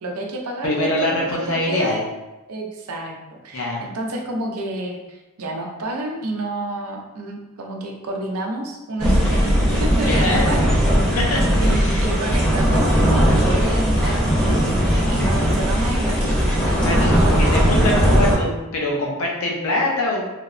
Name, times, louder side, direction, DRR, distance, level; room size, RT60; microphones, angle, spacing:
voice 1, 0.0-2.1 2.5-10.7 11.0-11.1 11.6-14.3 14.6-16.6 17.0-18.0, right 2 dB, 75° right, 1 dB, 0.5 m, -30 dB
voice 2, 0.6-2.0 3.5-3.8 10.0-10.5 11.1-12.0 16.8-20.2, left 1 dB, 70° left, -2 dB, 0.6 m, -23 dB
sound 1, 9.0-18.4, equal, 5° left, 0.7 m, -18 dB
3.3 x 2.0 x 2.4 m, 1.0 s
head